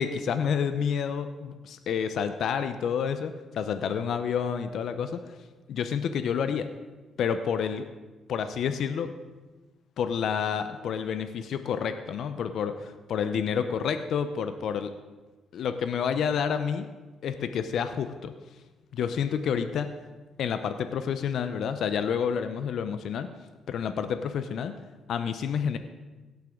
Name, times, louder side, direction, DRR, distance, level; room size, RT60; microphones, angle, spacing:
voice 1, 0.0-5.4 5.7-6.7 7.2-7.9 8.3-9.1 10.0-14.9 15.5-16.9 17.2-18.3 18.9-19.9 20.4-23.3 23.7-24.7 25.1-25.8, left 7 dB, 70° left, 9 dB, 0.7 m, -29 dB
17.0 x 9.3 x 3.8 m, 1.2 s
cardioid pair, 90°, 0 cm